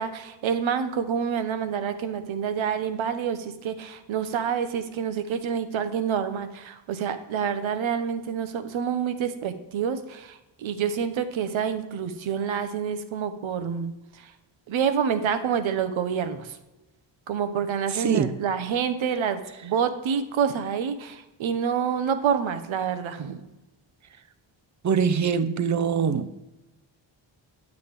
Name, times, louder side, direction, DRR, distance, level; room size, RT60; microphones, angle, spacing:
voice 1, 0.0-14.3 14.7-16.6 17.3-23.4, right 7 dB, 75° right, 10 dB, 0.9 m, -27 dB
voice 2, 17.9-18.3 24.8-26.3, right 6 dB, 35° right, 11 dB, 0.6 m, -23 dB
9.0 x 7.1 x 3.5 m, 1.0 s
cardioid pair, 70°, 47 cm